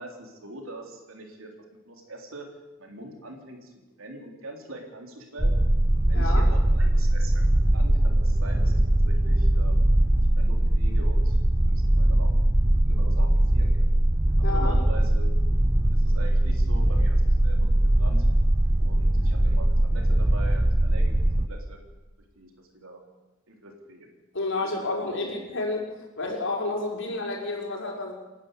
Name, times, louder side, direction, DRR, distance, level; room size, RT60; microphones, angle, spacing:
voice 1, 0.0-1.5 1.9-2.5 2.8-3.7 4.0-5.6 6.0-7.4 7.7-11.4 11.7-12.3 12.9-13.7 14.5-15.3 15.9-17.2 17.4-18.3 18.8-21.1 21.4-21.8 22.4-23.0 23.5-24.1 24.4-25.2, right 1 dB, 75° right, 2 dB, 4.0 m, -43 dB
sound 1, 5.4-21.5, right 1 dB, 15° right, 0.8 m, -21 dB
voice 2, 6.1-6.5 14.4-14.7 24.3-25.9 26.2-28.1, left 2 dB, 65° left, 0 dB, 5.5 m, -30 dB
29.0 x 11.5 x 8.4 m, 1.1 s
head